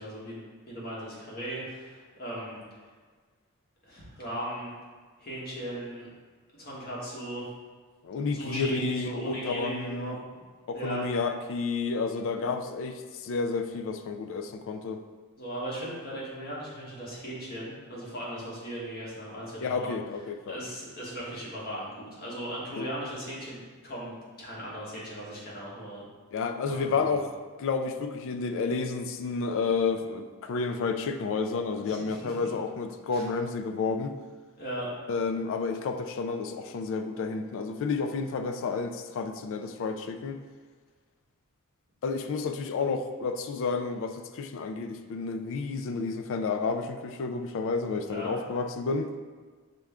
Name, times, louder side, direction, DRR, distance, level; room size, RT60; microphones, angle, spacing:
voice 1, 0.0-2.6 3.8-4.7 5.2-6.1 6.5-7.5 8.3-10.4 10.7-11.1 15.4-20.0 20.5-26.0 26.6-27.2 31.9-32.5 33.1-33.2 34.6-34.9 48.1-48.3, right 1 dB, 45° left, -6 dB, 1.3 m, -38 dB
voice 2, 8.0-10.2 10.7-15.0 19.6-20.6 22.8-22.9 26.3-27.3 27.6-34.2 35.1-40.4 42.0-49.1, left 4 dB, 65° left, 8 dB, 0.3 m, -31 dB
6.0 x 2.2 x 3.5 m, 1.5 s
head